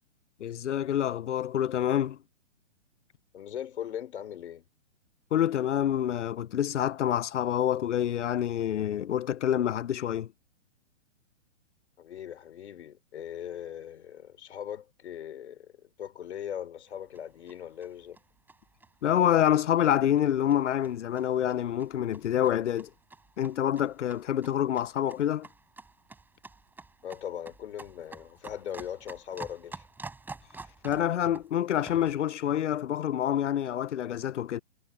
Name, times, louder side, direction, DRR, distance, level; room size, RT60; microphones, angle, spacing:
voice 1, 0.4-2.2 5.3-10.3 19.0-22.9 23.4-25.5 30.8-34.6, left 10 dB, 85° left, 0.7 m, -27 dB
voice 2, 3.3-4.7 12.0-18.2 27.0-29.8, left 9 dB, 65° left, 3.6 m, -40 dB
sound 1, 16.9-32.3, right 3 dB, 5° right, 3.8 m, -49 dB
hypercardioid pair, 155°, 35 cm